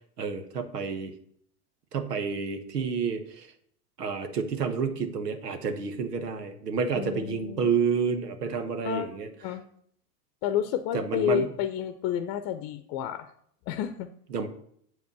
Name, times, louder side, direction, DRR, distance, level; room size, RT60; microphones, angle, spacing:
voice 1, 0.2-1.1 1.9-3.5 4.0-9.3 10.9-11.5 14.3-14.5, right 5 dB, 85° right, 8 dB, 1.3 m, -29 dB
voice 2, 6.9-7.6 8.8-9.1 9.4-9.6 10.4-13.3 13.7-14.1, left 10 dB, 45° left, 11 dB, 0.8 m, -30 dB
8.0 x 5.2 x 6.8 m, 0.65 s
hypercardioid pair, 85°, 47 cm